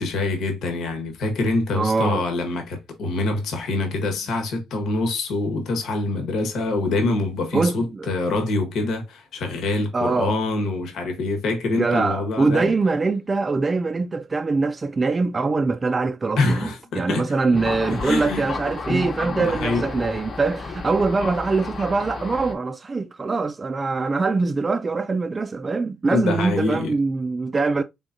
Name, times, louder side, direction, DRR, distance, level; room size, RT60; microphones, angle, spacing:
voice 1, 0.0-12.7 16.4-17.3 17.9-18.5 18.9-19.9 26.1-26.9, left 2 dB, 75° left, 1.2 m, -25 dB
voice 2, 1.7-2.2 7.5-8.1 9.9-10.4 11.7-27.8, right 3 dB, 30° right, 0.4 m, -23 dB
Thunder, 17.5-22.5, left 4 dB, 50° left, 1.0 m, -32 dB
3.8 x 3.5 x 2.6 m
cardioid pair, 90°, 0 cm